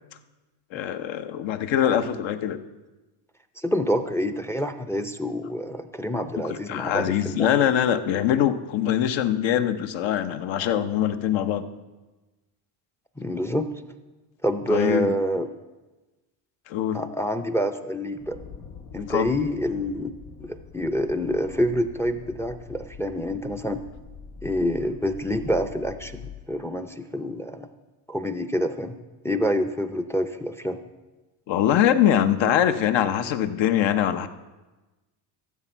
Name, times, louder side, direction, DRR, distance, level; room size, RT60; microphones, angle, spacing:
voice 1, 0.7-2.6 6.5-11.6 14.7-15.1 16.7-17.0 19.1-19.3 31.5-34.3, left 10 dB, 65° left, 9 dB, 0.9 m, -23 dB
voice 2, 3.6-7.5 13.2-13.7 14.4-15.5 16.9-18.4 18.9-20.1 20.4-23.8 24.4-27.7 28.1-28.9 29.2-30.8, equal, 5° left, 9 dB, 0.5 m, -27 dB
sound 1, 18.2-26.5, left 5 dB, 90° left, 1.8 m, -44 dB
14.0 x 7.4 x 4.5 m, 1.2 s
supercardioid pair, 90°, 49 cm